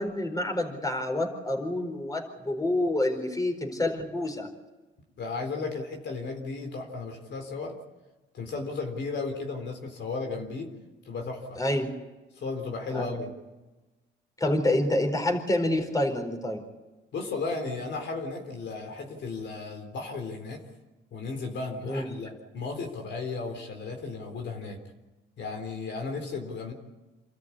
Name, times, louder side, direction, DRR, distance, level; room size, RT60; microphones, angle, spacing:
voice 1, 0.0-4.5 11.6-11.9 12.9-13.0 14.4-16.6 21.8-22.1, left 1 dB, 20° left, 3 dB, 4.5 m, -27 dB
voice 2, 5.2-7.8 8.3-10.7 11.1-11.6 12.3-13.3 14.4-14.5 17.1-20.6 21.1-24.8 25.4-26.7, left 4 dB, 65° left, 3 dB, 3.8 m, -34 dB
27.5 x 13.5 x 8.5 m, 1.2 s
cardioid pair, 90°, 20 cm